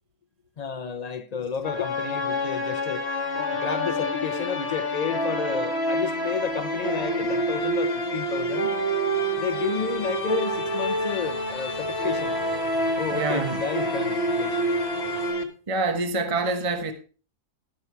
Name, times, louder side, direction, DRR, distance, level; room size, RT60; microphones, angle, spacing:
voice 1, 0.6-3.1 3.6-8.7 9.4-12.3 13.0-14.6, left 6 dB, 80° left, 0.3 m, -31 dB
sound 1, 1.6-15.4, equal, 40° left, 1.7 m, -27 dB
sound 2, 6.5-15.3, equal, 85° right, 4.8 m, -44 dB
voice 2, 13.1-13.6 15.7-16.9, right 3 dB, 25° right, 1.0 m, -26 dB
12.0 x 6.9 x 4.5 m
omnidirectional pair, 1.7 m